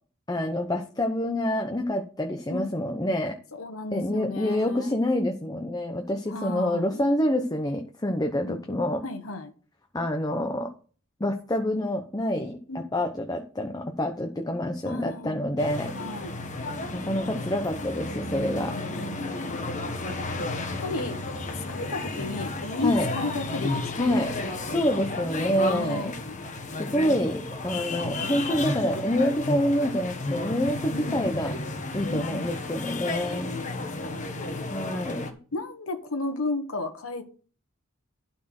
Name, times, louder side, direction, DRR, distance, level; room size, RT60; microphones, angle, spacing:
voice 1, 0.3-3.3 3.9-9.0 9.9-10.7 11.2-15.9 16.9-18.7 22.8-23.1 24.0-24.3 24.7-26.1 26.8-31.6 31.9-33.6 34.7-35.3, left 1 dB, 20° left, 1.0 m, -27 dB
voice 2, 3.5-5.0 6.3-7.0 8.4-8.5 9.0-9.5 12.7-12.8 14.8-15.4 15.9-16.3 18.7-19.6 20.4-21.2 21.5-24.8 25.7-26.4 30.9-31.3 32.1-32.5 34.0-34.7 35.5-37.2, left 3 dB, 85° left, 1.4 m, -34 dB
sound 1, 15.6-35.3, left 2 dB, 35° left, 1.4 m, -33 dB
12.0 x 4.5 x 6.0 m
head